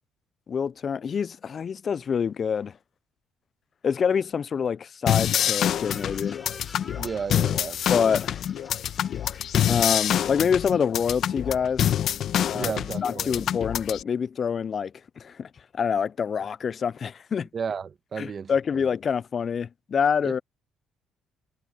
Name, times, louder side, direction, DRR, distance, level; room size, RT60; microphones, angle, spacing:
voice 1, 0.5-2.7 3.8-6.4 7.9-8.4 9.7-11.9 12.5-12.7 13.0-14.9 15.2-15.5 15.7-17.5 18.2-20.4, left 7 dB, 50° left, 0.4 m, -26 dB
sound 1, 5.1-14.0, left 10 dB, 65° left, 1.1 m, -26 dB
sound 2, 5.3-10.5, left 3 dB, 25° left, 3.3 m, -48 dB
voice 2, 7.0-7.8 12.5-13.5 17.5-18.9 20.2-20.3, right 6 dB, 45° right, 1.3 m, -33 dB
supercardioid pair, 65°, 0 cm